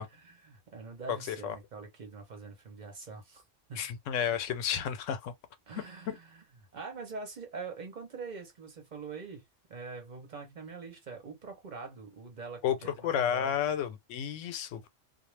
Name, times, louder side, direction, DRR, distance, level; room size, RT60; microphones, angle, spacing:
voice 1, 0.2-3.4 3.7-3.9 5.7-6.4 6.7-13.5, right 4 dB, 40° right, 0.9 m, -44 dB
voice 2, 1.1-1.6 3.8-5.3 5.8-6.2 12.6-14.9, left 9 dB, 85° left, 1.0 m, -32 dB
2.4 x 2.1 x 3.1 m
omnidirectional pair, 1.3 m